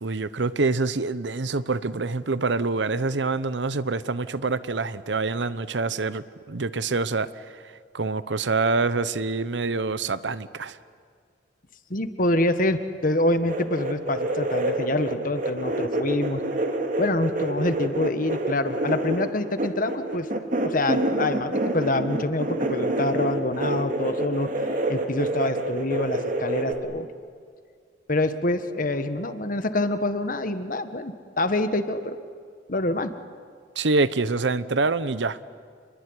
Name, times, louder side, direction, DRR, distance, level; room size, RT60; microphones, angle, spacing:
voice 1, 0.0-7.3 7.9-10.8 33.8-35.4, right 3 dB, 85° right, 15 dB, 0.9 m, -26 dB
voice 2, 11.9-16.4 17.0-20.3 20.6-24.5 24.9-27.1 28.1-32.2 32.7-33.1, left 2 dB, 50° left, 10 dB, 1.5 m, -26 dB
sound 1, 13.5-26.7, right 1 dB, 50° right, 2.4 m, -27 dB
27.5 x 21.5 x 9.9 m, 2.1 s
head